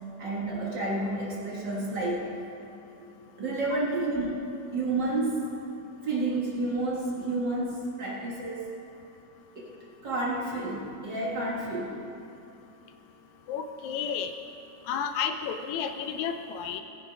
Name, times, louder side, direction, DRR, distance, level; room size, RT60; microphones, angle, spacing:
voice 1, 0.2-2.2 3.0-3.1 3.4-4.4 4.7-5.4 6.0-8.6 9.5-9.7 10.0-12.0, right 2 dB, 45° right, -4 dB, 1.5 m, -30 dB
voice 2, 13.5-14.3 14.9-16.8, left 7 dB, 80° left, 8 dB, 1.7 m, -31 dB
18.5 x 6.7 x 5.1 m, 2.7 s
omnidirectional pair, 3.7 m